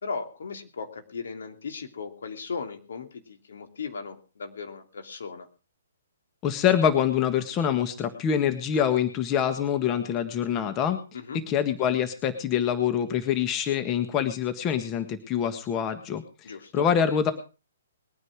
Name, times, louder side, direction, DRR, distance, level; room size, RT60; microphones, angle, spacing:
voice 1, 0.0-5.5 11.1-11.4 16.4-16.8, left 5 dB, 70° left, 6 dB, 2.9 m, -37 dB
voice 2, 6.4-11.0 11.3-17.3, left 8 dB, 25° left, 9 dB, 1.5 m, -25 dB
21.0 x 9.7 x 4.8 m, 0.34 s
hypercardioid pair, 135°, 0 cm